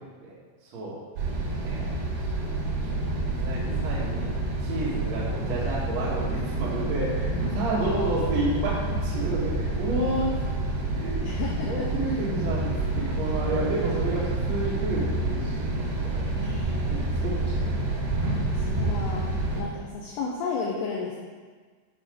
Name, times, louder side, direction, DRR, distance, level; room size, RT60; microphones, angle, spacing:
voice 1, 0.6-1.0 1.5-1.9 2.2-4.3 4.6-10.3 10.9-11.2 11.6-16.3 16.9-17.6 19.5-19.6, right 2 dB, 55° right, -6 dB, 2.0 m, -31 dB
sound 1, 1.2-19.6, right 2 dB, 75° right, 3.8 m, -28 dB
voice 2, 7.7-8.1 11.2-11.9 16.4-17.0 18.5-19.2 19.5-21.2, left 4 dB, 75° left, -1 dB, 2.6 m, -33 dB
10.5 x 5.4 x 4.9 m, 1.5 s
omnidirectional pair, 5.3 m